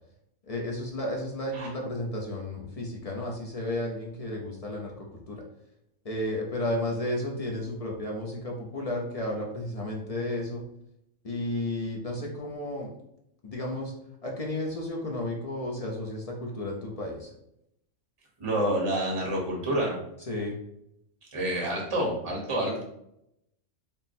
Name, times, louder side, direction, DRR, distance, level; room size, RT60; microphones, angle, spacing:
voice 1, 0.5-5.4 6.0-10.6 11.2-12.9 13.4-13.9 14.2-17.3 20.3-20.6, left 1 dB, 55° left, -1 dB, 0.4 m, -33 dB
voice 2, 18.4-20.0 21.3-22.8, right 1 dB, 25° right, -2 dB, 0.9 m, -28 dB
3.6 x 2.0 x 4.0 m, 0.79 s
omnidirectional pair, 1.3 m